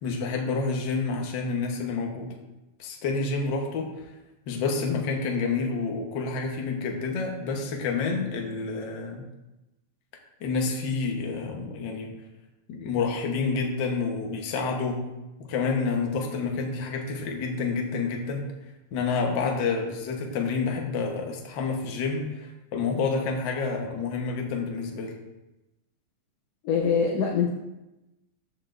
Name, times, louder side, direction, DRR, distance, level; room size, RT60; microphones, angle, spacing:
voice 1, 0.0-2.3 2.8-4.1 4.5-9.2 10.4-12.1 12.7-15.1 15.4-18.4 18.9-25.1, left 4 dB, 55° left, 1 dB, 1.3 m, -29 dB
voice 2, 26.6-27.5, left 6 dB, 75° left, 0 dB, 1.6 m, -23 dB
13.0 x 6.1 x 2.6 m, 0.99 s
omnidirectional pair, 3.4 m